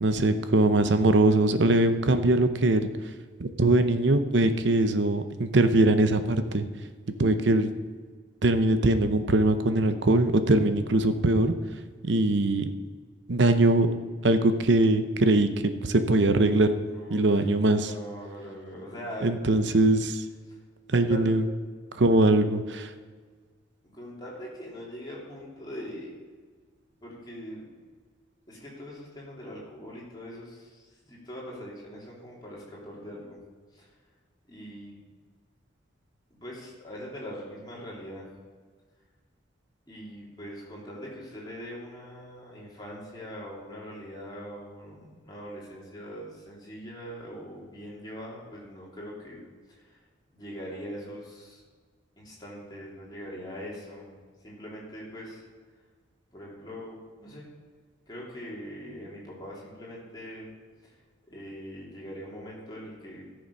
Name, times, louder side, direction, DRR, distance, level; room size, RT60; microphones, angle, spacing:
voice 1, 0.0-2.9 3.4-6.6 7.2-7.7 8.4-11.5 12.0-12.7 13.3-13.9 14.2-16.7 17.1-17.9 19.2-20.2 20.9-21.4 22.0-22.9, right 2 dB, 70° right, 9 dB, 0.8 m, -22 dB
voice 2, 16.9-19.3 20.5-20.6 20.9-21.3 23.8-26.1 27.0-27.7 28.5-33.4 33.7-33.9 34.5-35.0 36.3-38.3 39.9-49.4 49.7-50.0 50.3-51.6 52.2-55.4 56.3-57.5 58.1-60.5 60.8-60.9 61.3-63.3, equal, 20° left, -5 dB, 3.2 m, -42 dB
14.5 x 6.8 x 5.4 m, 1.5 s
head